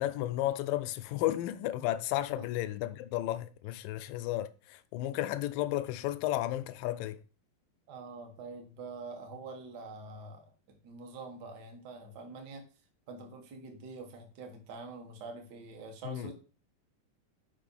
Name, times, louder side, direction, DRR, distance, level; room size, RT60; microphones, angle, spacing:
voice 1, 0.0-7.2 16.0-16.3, left 14 dB, 85° left, 2.0 m, -33 dB
voice 2, 7.9-12.6 13.1-16.3, right 3 dB, 70° right, 0.9 m, -45 dB
6.8 x 5.3 x 5.3 m
omnidirectional pair, 4.3 m